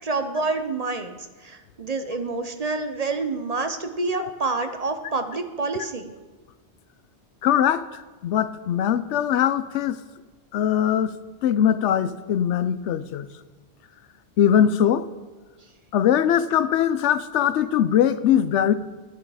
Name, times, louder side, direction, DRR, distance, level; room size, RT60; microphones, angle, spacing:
voice 1, 0.0-6.1, right 3 dB, 40° right, 8 dB, 0.7 m, -28 dB
voice 2, 7.4-10.0 10.5-11.1 11.4-13.3 14.4-15.1 15.9-18.7, left 9 dB, 90° left, 14 dB, 0.9 m, -21 dB
11.5 x 10.0 x 4.9 m, 1.3 s
omnidirectional pair, 1.2 m